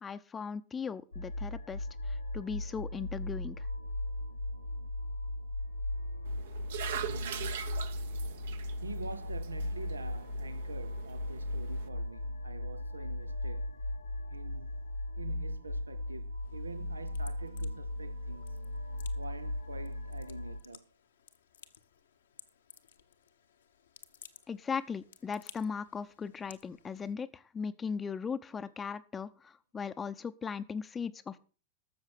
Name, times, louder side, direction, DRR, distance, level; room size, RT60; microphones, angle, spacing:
voice 1, 0.0-3.7 24.5-31.4, left 6 dB, 20° left, 0.7 m, -38 dB
sound 1, 1.1-20.6, left 1 dB, 85° left, 1.3 m, -37 dB
sound 2, 6.3-11.9, right 10 dB, 60° right, 1.0 m, -43 dB
voice 2, 7.0-7.7 8.8-13.7 14.3-14.8 15.1-18.6 18.9-20.9, right 3 dB, 80° right, 0.7 m, -46 dB
sound 3, 16.4-27.1, left 8 dB, 65° left, 1.1 m, -58 dB
13.0 x 7.3 x 6.1 m
figure-of-eight pair, 90°, 0 cm